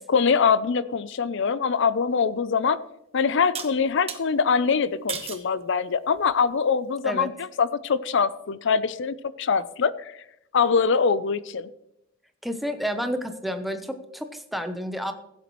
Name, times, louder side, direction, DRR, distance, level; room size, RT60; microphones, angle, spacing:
voice 1, 0.1-2.8 3.1-10.2 10.5-11.7, left 5 dB, 65° left, 15 dB, 0.5 m, -23 dB
sound 1, 2.2-2.3 3.5-4.2 5.1-5.5 6.1-6.5, right 7 dB, 30° right, 1.1 m, -35 dB
voice 2, 12.4-15.1, equal, ahead, 6 dB, 0.8 m, -30 dB
16.0 x 8.2 x 3.1 m, 0.82 s
head